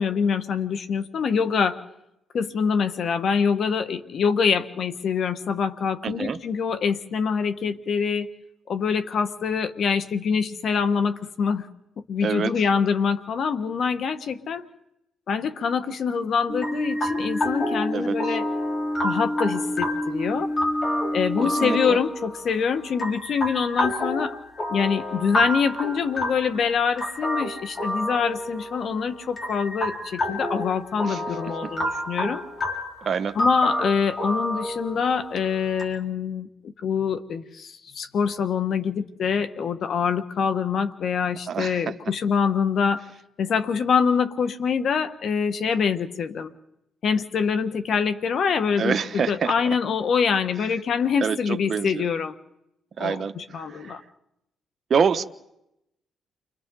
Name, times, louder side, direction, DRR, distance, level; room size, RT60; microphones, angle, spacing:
voice 1, 0.0-1.8 2.3-8.3 8.7-11.7 12.1-14.6 15.3-18.4 19.0-20.5 21.1-24.4 24.7-32.4 33.3-43.0 43.4-46.5 47.0-52.3 53.0-54.0, left 6 dB, 60° left, 10 dB, 1.5 m, -25 dB
voice 2, 6.0-6.4 12.2-12.5 17.9-18.2 21.4-22.0 31.0-31.4 31.6-31.7 33.0-33.4 41.5-41.8 48.8-49.8 51.2-52.1 53.0-54.0 54.9-55.2, right 6 dB, 50° right, 7 dB, 0.9 m, -26 dB
sound 1, 16.5-21.9, left 1 dB, 5° left, 2.4 m, -29 dB
sound 2, 16.6-35.8, left 1 dB, 40° left, 5.0 m, -30 dB
29.5 x 24.0 x 4.0 m, 0.83 s
cardioid pair, 90°, 0 cm